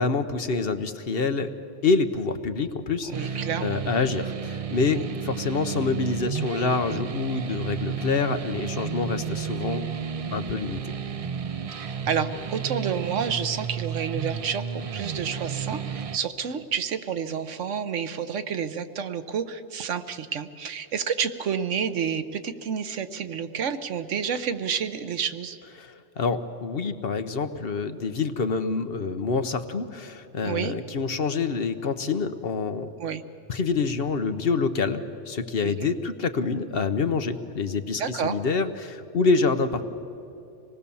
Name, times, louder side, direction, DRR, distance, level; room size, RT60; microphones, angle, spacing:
voice 1, 0.0-1.5 1.8-9.8 10.3-10.9 25.8-32.9 33.5-39.8, left 4 dB, 55° left, 9 dB, 1.1 m, -27 dB
sound 1, 3.1-16.2, right 7 dB, 50° right, 0.4 m, -32 dB
voice 2, 3.1-3.8 4.9-5.1 11.8-25.6 30.4-30.7 33.0-33.2 35.6-35.9 38.0-38.4, right 7 dB, 90° right, 11 dB, 1.3 m, -30 dB
26.0 x 19.5 x 7.0 m, 2.7 s
omnidirectional pair, 1.2 m